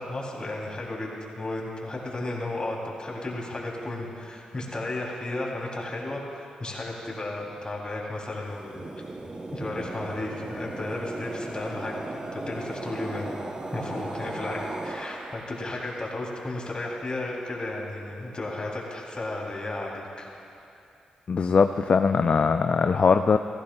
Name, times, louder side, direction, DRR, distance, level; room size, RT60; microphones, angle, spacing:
voice 1, 0.0-8.8 9.5-13.4 13.7-20.3, left 2 dB, 35° left, -2 dB, 2.9 m, -34 dB
sound 1, 8.4-15.8, right 2 dB, 30° right, 0.8 m, -37 dB
voice 2, 21.3-23.4, left 5 dB, 50° left, 8 dB, 0.3 m, -21 dB
15.5 x 15.0 x 2.3 m, 2.6 s
supercardioid pair, 45°, 3 cm